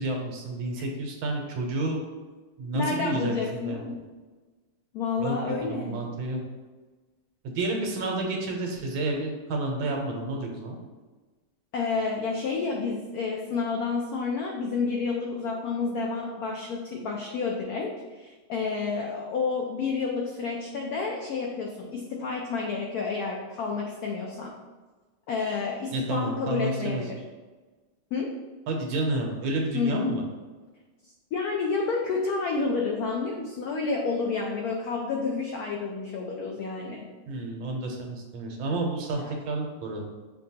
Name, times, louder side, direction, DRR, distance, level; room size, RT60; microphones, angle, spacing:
voice 1, 0.0-2.0 2.6-3.8 5.2-5.4 5.6-6.4 7.4-10.8 25.9-27.0 28.7-30.2 37.3-40.0, right 2 dB, 85° right, 1 dB, 1.5 m, -30 dB
voice 2, 2.7-3.9 4.9-6.0 11.7-24.5 25.3-27.2 28.1-28.3 29.7-30.1 31.3-37.1 39.2-39.3, left 4 dB, 90° left, 0 dB, 0.8 m, -30 dB
6.5 x 2.2 x 2.7 m, 1.3 s
omnidirectional pair, 2.2 m